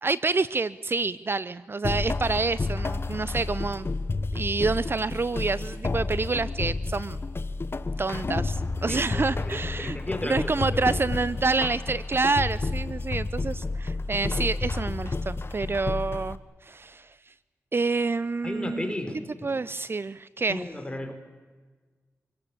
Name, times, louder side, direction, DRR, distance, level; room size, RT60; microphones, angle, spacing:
voice 1, 0.0-3.9 4.3-7.2 8.0-10.0 10.3-17.3 17.7-18.9 19.4-20.6, right 3 dB, 45° right, 17 dB, 0.6 m, -28 dB
sound 1, 1.8-16.4, left 3 dB, 45° left, 1.2 m, -30 dB
voice 2, 8.9-10.5 10.9-11.2 18.4-19.6 20.5-21.1, left 1 dB, 15° left, 6 dB, 4.9 m, -35 dB
26.0 x 17.5 x 8.6 m, 1.4 s
cardioid pair, 50°, 5 cm